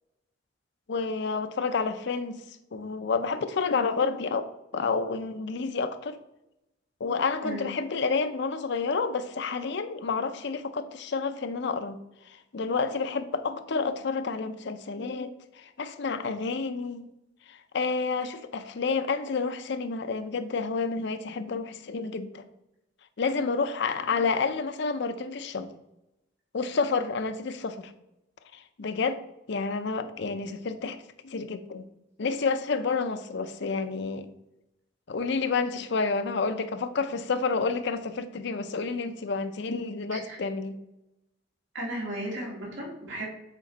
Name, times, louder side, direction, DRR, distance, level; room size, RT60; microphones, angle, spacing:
voice 1, 0.9-2.4 2.7-6.2 7.0-12.0 12.5-17.0 17.5-22.4 23.2-25.7 26.5-27.9 28.5-29.2 29.5-31.8 32.2-34.3 35.1-40.8, left 4 dB, 65° left, 10 dB, 0.6 m, -29 dB
voice 2, 41.7-43.3, right 1 dB, 80° right, -3 dB, 1.9 m, -35 dB
7.4 x 4.4 x 4.0 m, 0.89 s
head